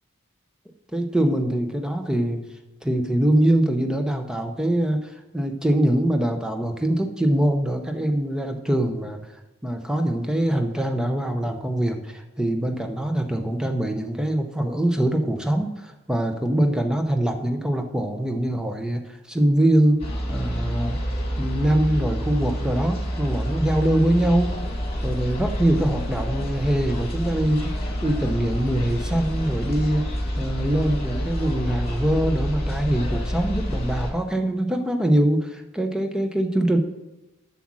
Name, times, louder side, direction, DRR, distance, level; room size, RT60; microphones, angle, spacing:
voice 1, 0.9-2.4 2.8-9.2 9.6-20.0 20.3-21.0 21.4-24.6 25.0-30.1 30.4-36.8, right 1 dB, 5° right, 5 dB, 0.7 m, -23 dB
sound 1, 20.0-34.1, equal, 30° left, 1.9 m, -28 dB
7.8 x 7.3 x 6.1 m, 1.0 s
head